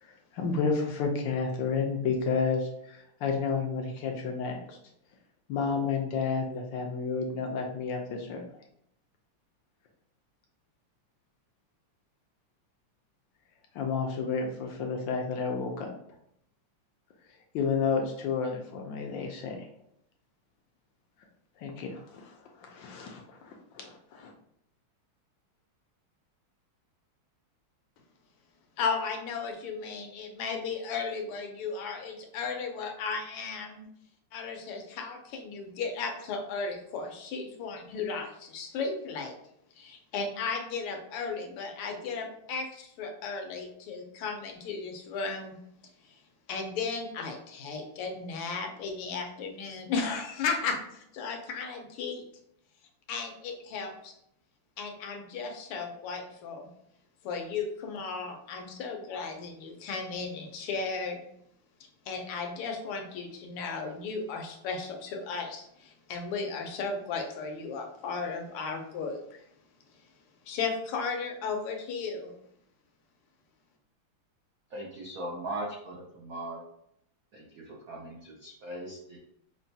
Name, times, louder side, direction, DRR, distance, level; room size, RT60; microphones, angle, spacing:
voice 1, 0.0-4.8 5.5-8.4 13.7-15.9 17.5-19.6 21.6-24.3, left 5 dB, 70° left, 2 dB, 1.2 m, -31 dB
voice 2, 28.8-33.9 34.3-39.3 39.8-45.5 46.5-52.2 53.1-54.1 54.8-56.7 57.2-61.2 62.1-69.4 70.5-72.3, left 4 dB, 90° left, 3 dB, 1.7 m, -35 dB
voice 3, 74.7-76.6 77.3-79.2, right 1 dB, 75° right, -3 dB, 0.7 m, -39 dB
6.0 x 2.2 x 2.7 m, 0.73 s
omnidirectional pair, 2.4 m